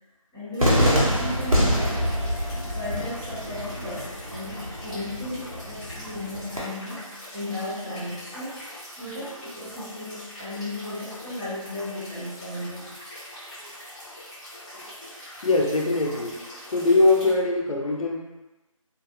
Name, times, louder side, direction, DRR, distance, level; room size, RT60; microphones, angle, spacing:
voice 1, 0.3-2.0 2.7-12.9 16.3-16.5, left 1 dB, 5° right, -24 dB, 1.0 m, -35 dB
sound 1, 0.5-17.3, equal, 10° left, 0.7 m, -43 dB
Cheering / Fireworks, 0.6-6.6, equal, 90° right, 0.9 m, -26 dB
voice 2, 15.4-16.4 16.7-18.2, left 2 dB, 80° left, 0 dB, 0.5 m, -22 dB
2.5 x 2.3 x 2.5 m, 1.1 s
figure-of-eight pair, 165°, 18 cm